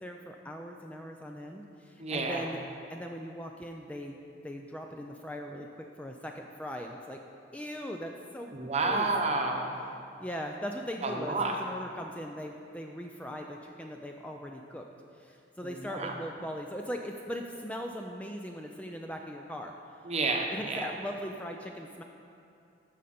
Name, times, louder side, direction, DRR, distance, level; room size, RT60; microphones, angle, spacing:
voice 1, 0.0-2.6 2.9-4.2 4.4-7.2 7.5-9.1 10.2-14.9 15.2-19.7 20.5-22.0, equal, 5° left, 2 dB, 0.4 m, -40 dB
voice 2, 2.0-2.4 8.5-9.8 11.0-11.6 15.6-16.1 20.0-20.9, right 3 dB, 35° right, 2 dB, 0.9 m, -30 dB
13.5 x 5.3 x 4.3 m, 2.5 s
head